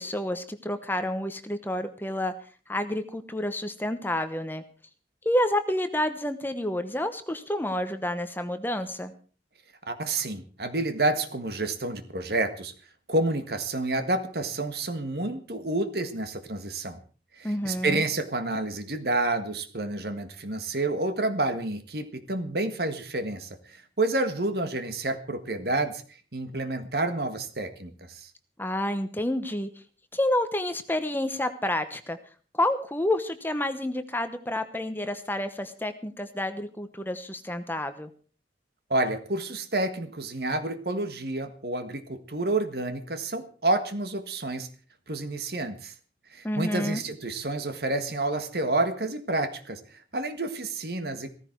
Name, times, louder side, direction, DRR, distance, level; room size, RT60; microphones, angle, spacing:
voice 1, 0.0-2.3 2.7-4.6 5.2-9.1 17.4-18.0 28.6-29.7 30.1-32.2 32.5-38.1 46.4-47.0, left 1 dB, 10° left, 9 dB, 0.9 m, -29 dB
voice 2, 9.9-12.7 13.1-17.0 17.4-26.0 26.3-28.3 38.9-44.7 45.1-45.9 46.3-51.3, right 2 dB, 60° right, 9 dB, 1.6 m, -29 dB
16.0 x 14.5 x 4.6 m, 0.40 s
head